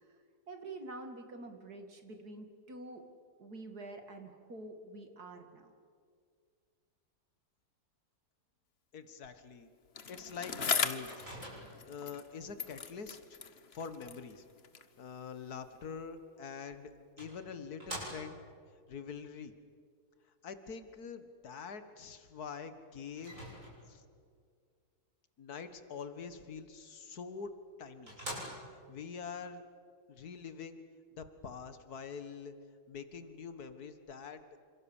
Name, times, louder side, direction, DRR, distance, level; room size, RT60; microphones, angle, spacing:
voice 1, 0.5-3.0 3.4-5.7, right 2 dB, 75° right, 5 dB, 3.0 m, -47 dB
voice 2, 8.9-9.7 10.1-11.2 11.9-14.4 15.0-16.9 17.2-18.5 18.9-19.5 20.4-23.4 23.9-24.0 25.4-27.5 27.8-28.3 28.7-29.6 30.1-30.8 31.2-32.5 32.9-34.4, left 6 dB, 75° left, 10 dB, 2.1 m, -45 dB
Bicycle, 10.0-12.3 12.6-15.0 15.7-15.8, left 6 dB, 45° left, 1.3 m, -38 dB
Microwave oven, 11.1-12.0 16.3-16.4 17.2-18.5 23.2-24.1 27.2-27.3 27.7-27.8 28.1-28.9, equal, 55° right, 8.3 m, -45 dB
28.0 x 26.5 x 7.3 m, 2.1 s
omnidirectional pair, 1.7 m